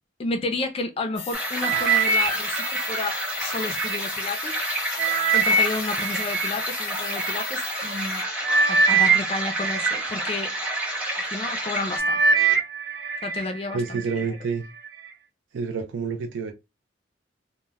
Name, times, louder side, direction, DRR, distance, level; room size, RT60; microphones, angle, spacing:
voice 1, 0.2-4.6 5.3-8.2 8.7-10.5 11.3-12.4 13.2-14.0, left 3 dB, 30° left, 0.3 m, -31 dB
sound 1, 1.2-8.2, left 9 dB, 90° left, 0.5 m, -37 dB
sound 2, 1.3-12.0, right 1 dB, 5° right, 0.7 m, -30 dB
sound 3, 1.6-4.0 4.5-7.3 8.0-8.2 8.4-10.8 11.3-11.6 11.9-13.4 13.8-14.2 14.9-15.0, right 4 dB, 60° right, 0.8 m, -23 dB
voice 2, 13.7-14.7 15.5-16.5, right 5 dB, 80° right, 0.4 m, -28 dB
2.1 x 2.0 x 3.3 m
head